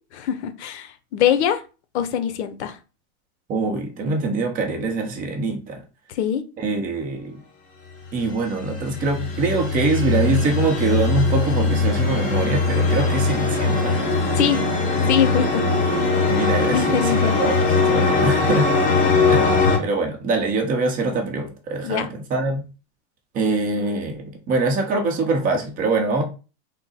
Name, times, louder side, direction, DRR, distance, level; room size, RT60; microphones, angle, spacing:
voice 1, 0.1-1.6 1.9-2.8 6.2-6.4 14.3-14.7 15.1-15.6 16.7-17.5 21.8-22.1, left 9 dB, 75° left, 10 dB, 0.7 m, -23 dB
voice 2, 3.5-5.8 6.6-7.3 8.1-13.9 16.3-18.7 19.3-22.6 23.3-26.2, right 3 dB, 25° right, 3 dB, 0.7 m, -24 dB
sound 1, 8.2-19.8, left 3 dB, 25° left, 1.0 m, -20 dB
3.7 x 2.0 x 4.0 m, 0.33 s
supercardioid pair, 150°, 34 cm